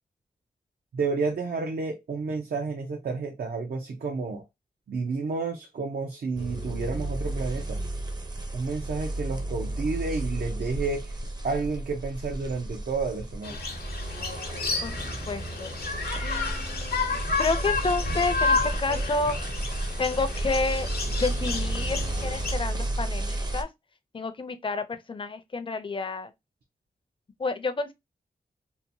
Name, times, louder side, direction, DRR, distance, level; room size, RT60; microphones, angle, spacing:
voice 1, 0.9-4.4 4.9-7.8 8.5-11.2 11.4-13.6, right 4 dB, 75° right, 0.6 m, -30 dB
sound 1, 6.4-23.6, right 1 dB, 25° right, 0.5 m, -32 dB
sound 2, 13.4-22.6, left 4 dB, 75° left, 0.7 m, -31 dB
voice 2, 14.8-15.7 16.2-19.4 20.0-23.7 24.1-26.3 27.4-27.9, left 3 dB, 30° left, 0.5 m, -30 dB
2.8 x 2.2 x 2.6 m
wide cardioid pair, 75°, 16 cm